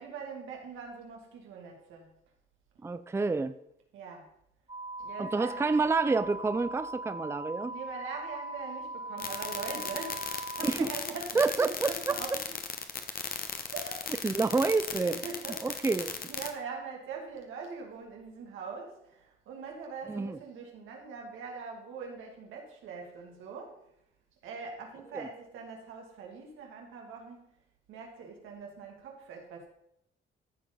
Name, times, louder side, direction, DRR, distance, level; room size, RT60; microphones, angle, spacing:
voice 1, 0.0-2.1 3.9-4.3 5.0-5.6 7.6-12.5 13.7-14.1 14.4-14.5 15.0-15.9 16.3-23.8 24.4-27.4 27.9-29.7, right 5 dB, 90° right, 1 dB, 2.5 m, -42 dB
voice 2, 2.8-3.5 5.2-7.7 10.6-10.9 11.3-11.9 14.2-15.2 15.6-16.1 20.1-20.4 25.1-25.3, right 3 dB, 15° right, 12 dB, 0.5 m, -28 dB
sound 1, 4.7-10.7, right 2 dB, 30° right, 2.2 m, -40 dB
sound 2, 9.2-16.5, left 7 dB, 50° left, 1.3 m, -36 dB
14.0 x 4.7 x 5.5 m, 0.77 s
cardioid pair, 90°, 20 cm